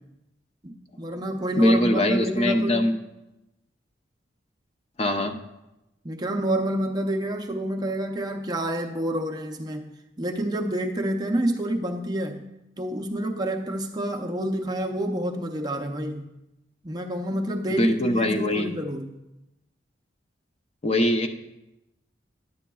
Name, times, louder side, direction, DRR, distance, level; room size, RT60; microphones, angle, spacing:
voice 1, 0.6-2.9 6.0-9.9 10.2-12.4 12.8-16.3 16.8-19.1, right 1 dB, 20° right, 3 dB, 0.5 m, -28 dB
voice 2, 1.6-2.9 5.0-5.3 17.7-18.7 20.8-21.3, left 1 dB, 35° left, 5 dB, 0.5 m, -22 dB
11.0 x 8.3 x 2.3 m, 0.94 s
head